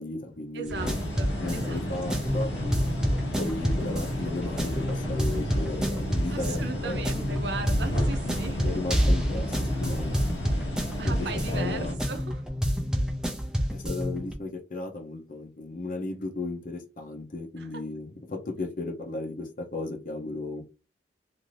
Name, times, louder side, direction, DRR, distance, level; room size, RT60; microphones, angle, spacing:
voice 1, 0.0-1.0 1.4-2.5 3.4-7.0 7.3-7.5 8.6-10.2 11.0-12.0 13.7-20.6, left 2 dB, 45° left, 4 dB, 0.6 m, -35 dB
voice 2, 0.5-1.8 6.3-8.7 10.5-12.4 17.6-17.8, right 4 dB, 70° right, 7 dB, 0.6 m, -38 dB
sound 1, 0.7-11.9, equal, 80° left, 0.9 m, -33 dB
sound 2, 0.7-14.3, equal, 5° right, 0.4 m, -29 dB
2.6 x 2.5 x 3.1 m, 0.32 s
head